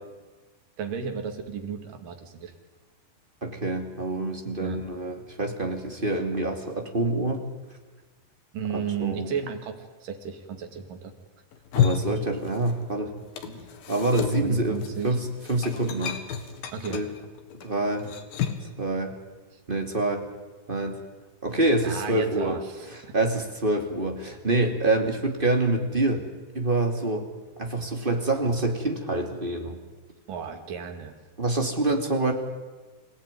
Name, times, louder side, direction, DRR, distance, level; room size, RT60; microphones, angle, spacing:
voice 1, 0.8-2.5 4.6-4.8 8.5-11.1 13.5-13.6 14.3-15.2 16.7-17.0 19.5-19.6 21.8-23.2 30.3-31.2, right 7 dB, 65° right, 6 dB, 3.7 m, -34 dB
voice 2, 3.4-7.4 8.7-9.3 11.7-13.1 13.9-16.2 16.9-17.1 17.6-18.0 18.8-19.1 19.7-20.2 20.7-21.0 21.4-22.6 22.9-26.2 26.5-27.3 27.6-29.8 31.4-32.3, right 2 dB, 15° right, 3 dB, 2.1 m, -26 dB
sound 1, 11.5-12.9 13.2-18.7, left 8 dB, 85° left, 3.6 m, -31 dB
26.5 x 17.0 x 9.8 m, 1.3 s
omnidirectional pair, 4.2 m